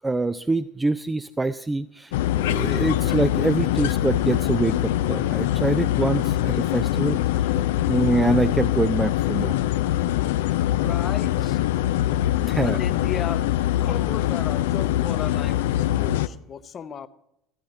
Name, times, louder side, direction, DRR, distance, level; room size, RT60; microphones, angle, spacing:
voice 1, 0.0-7.5 7.8-9.6 12.5-12.8, right 2 dB, 15° right, 10 dB, 0.4 m, -25 dB
sound 1, 2.1-16.3, left 13 dB, 70° left, 0.4 m, -23 dB
voice 2, 10.7-11.6 12.6-13.5 13.8-17.1, left 7 dB, 35° left, 12 dB, 0.7 m, -35 dB
14.0 x 12.5 x 4.0 m, 0.78 s
figure-of-eight pair, 70°, 0 cm